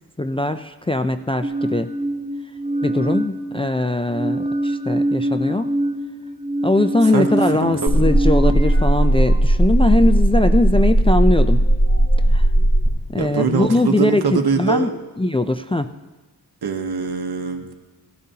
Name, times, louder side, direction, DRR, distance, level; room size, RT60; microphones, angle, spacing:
voice 1, 0.2-1.9 2.8-5.7 6.6-11.6 12.3-12.5 13.1-14.9 15.2-15.9, left 2 dB, 15° left, 8 dB, 0.4 m, -20 dB
sound 1, 1.4-3.7 4.1-8.8, right 1 dB, 20° right, 1.1 m, -24 dB
voice 2, 7.5-8.0 13.1-14.9 16.6-17.7, right 5 dB, 70° right, 5 dB, 1.1 m, -23 dB
sound 2, 7.9-12.9, right 1 dB, 35° left, 3.8 m, -16 dB
15.5 x 12.5 x 2.8 m, 1.2 s
wide cardioid pair, 80°, 40 cm